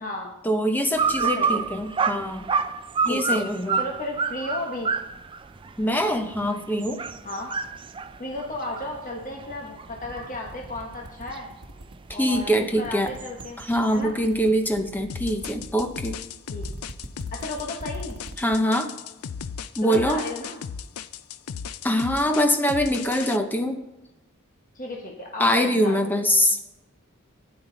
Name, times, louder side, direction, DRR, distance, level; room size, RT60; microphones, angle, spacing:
voice 1, 0.4-2.5 3.0-3.8 5.8-7.0 12.2-13.1 13.6-16.2 18.4-18.9 19.8-20.2 21.8-23.8 25.4-26.6, equal, 10° left, 6 dB, 0.7 m, -23 dB
sound 1, 1.0-10.6 11.0-14.0, right 5 dB, 25° right, 0.3 m, -29 dB
voice 2, 1.2-1.6 3.1-3.4 3.7-4.9 7.2-7.5 8.2-11.5 12.1-13.6 13.9-14.1 16.5-16.6 17.3-18.2 19.8-20.6 24.7-26.2, left 1 dB, 35° left, 0 dB, 1.2 m, -34 dB
sound 2, 7.2-9.4 9.8-12.4 12.8-18.6, right 1 dB, 80° right, 1.0 m, -42 dB
sound 3, 15.1-23.4, left 7 dB, 75° left, 0.5 m, -36 dB
12.0 x 9.7 x 4.0 m, 0.97 s
head